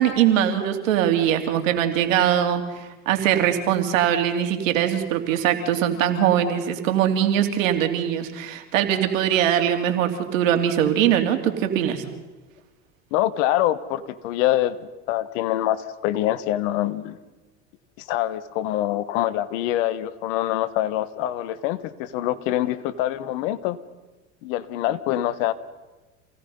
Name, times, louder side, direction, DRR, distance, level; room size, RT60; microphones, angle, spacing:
voice 1, 0.0-12.0, right 10 dB, 80° right, 6 dB, 3.0 m, -21 dB
voice 2, 13.1-14.8 15.1-17.2 18.0-23.8 24.4-25.5, left 13 dB, 70° left, 14 dB, 1.5 m, -25 dB
27.5 x 17.5 x 5.5 m, 1.2 s
hypercardioid pair, 95°, 39 cm